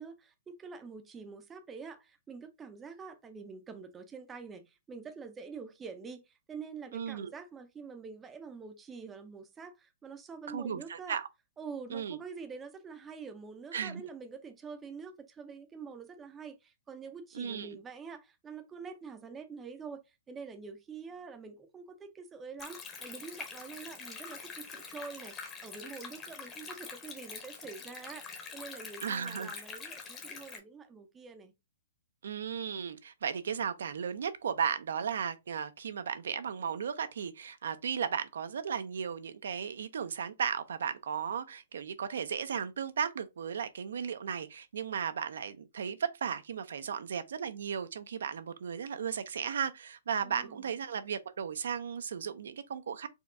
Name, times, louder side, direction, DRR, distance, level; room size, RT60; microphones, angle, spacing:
voice 1, 0.0-11.2 11.6-25.4 25.6-31.5 50.2-50.7, right 5 dB, 10° right, 0.5 m, -46 dB
voice 2, 6.9-7.3 10.5-11.3 11.9-12.2 13.7-14.0 17.3-17.7 29.0-29.5 32.2-53.1, right 7 dB, 80° right, 0.6 m, -35 dB
Stream, 22.6-30.6, left 5 dB, 15° left, 0.8 m, -45 dB
4.3 x 2.3 x 3.7 m
hypercardioid pair, 165°, 0 cm